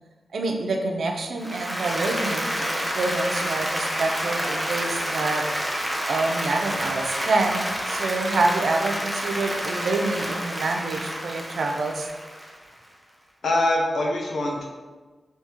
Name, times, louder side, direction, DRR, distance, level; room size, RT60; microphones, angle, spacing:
voice 1, 0.3-5.5 6.1-12.1, right 3 dB, 80° right, 3 dB, 0.4 m, -27 dB
Applause, 1.4-12.7, equal, 5° right, 0.6 m, -29 dB
voice 2, 13.4-14.7, left 1 dB, 75° left, -1 dB, 0.6 m, -23 dB
3.5 x 2.7 x 2.8 m, 1.3 s
wide cardioid pair, 80°, 0 cm